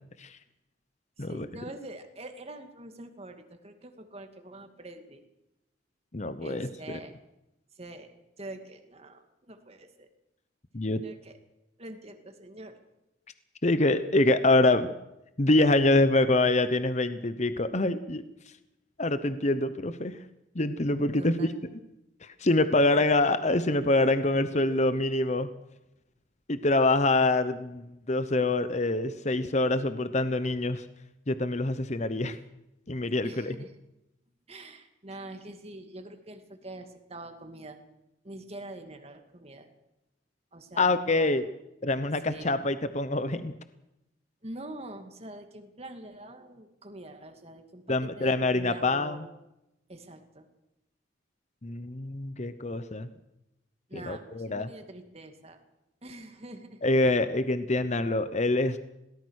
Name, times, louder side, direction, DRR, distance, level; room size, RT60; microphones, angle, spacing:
voice 1, 1.2-5.2 6.4-7.1 7.7-8.1 8.4-10.1 11.0-11.4 11.8-12.7 21.2-21.6 23.0-23.3 33.2-33.8 34.5-37.8 38.2-39.7 40.5-41.4 42.2-42.6 44.4-47.8 48.2-49.3 49.9-50.5 53.9-55.6 56.0-56.9, right 1 dB, 35° right, 6 dB, 2.3 m, -45 dB
voice 2, 6.1-7.0 10.7-11.0 13.6-14.9 15.4-18.2 19.0-20.1 20.5-21.5 22.2-25.5 26.5-30.8 31.3-32.4 32.9-33.5 40.8-41.4 41.8-43.5 47.9-49.3 51.6-53.1 53.9-54.7 56.8-58.8, left 2 dB, 40° left, 11 dB, 1.0 m, -25 dB
22.0 x 18.0 x 6.5 m, 0.89 s
head